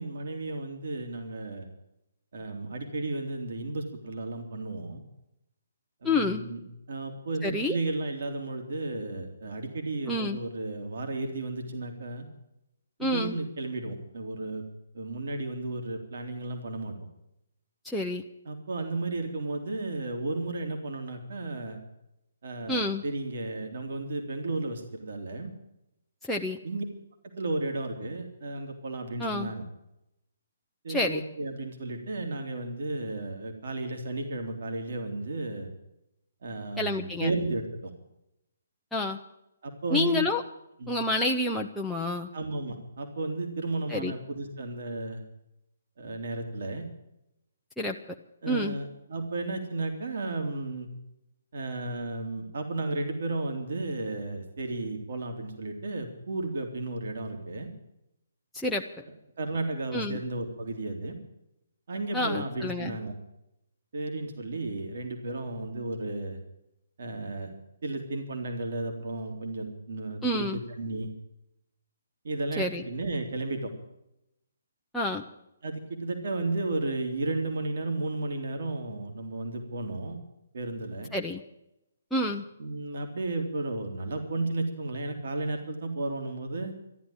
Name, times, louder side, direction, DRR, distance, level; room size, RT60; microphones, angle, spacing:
voice 1, 0.0-1.7 2.3-5.0 6.0-6.6 6.9-12.3 13.0-14.6 14.9-16.9 18.4-21.8 22.4-25.5 26.6-26.8 27.4-29.6 30.8-35.7 36.4-37.9 39.6-40.2 40.8-40.9 42.3-45.2 46.0-46.8 48.4-50.9 51.5-57.7 59.4-61.1 61.9-63.1 63.9-66.4 67.0-67.5 67.8-71.1 72.2-73.7 75.6-80.2 80.5-81.1 82.6-86.7, right 2 dB, 60° right, 4 dB, 3.0 m, -33 dB
voice 2, 6.0-6.4 7.4-7.8 10.1-10.4 13.0-13.4 17.8-18.2 22.7-23.0 26.2-26.6 29.2-29.5 30.9-31.2 36.8-37.3 38.9-39.2 39.9-40.4 40.9-42.3 43.9-44.1 47.8-48.0 48.5-48.8 58.5-58.8 59.9-60.2 62.1-63.0 70.2-70.6 72.6-72.8 74.9-75.2 81.1-81.4 82.1-82.4, left 1 dB, 5° left, -2 dB, 0.8 m, -28 dB
13.5 x 11.0 x 8.7 m, 0.84 s
figure-of-eight pair, 135°, 0 cm